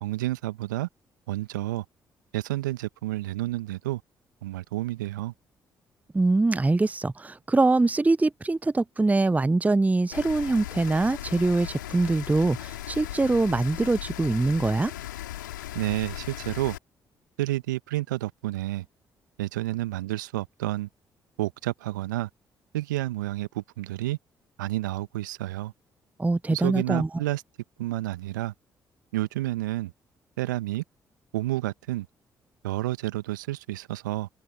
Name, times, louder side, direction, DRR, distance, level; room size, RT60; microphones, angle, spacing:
voice 1, 0.0-0.9 1.3-1.8 2.3-4.0 4.4-5.3 15.7-16.8 17.4-18.8 19.4-20.9 21.4-22.3 22.7-24.2 24.6-25.7 26.5-27.4 27.8-28.5 29.1-29.9 30.4-30.8 31.3-32.1 32.6-34.3, right 16 dB, 80° right, 1.4 m, -30 dB
voice 2, 6.1-14.9 26.2-27.1, right 3 dB, 15° right, 0.6 m, -23 dB
Rain, 10.1-16.8, left 13 dB, 80° left, 3.0 m, -37 dB
figure-of-eight pair, 40°, 10 cm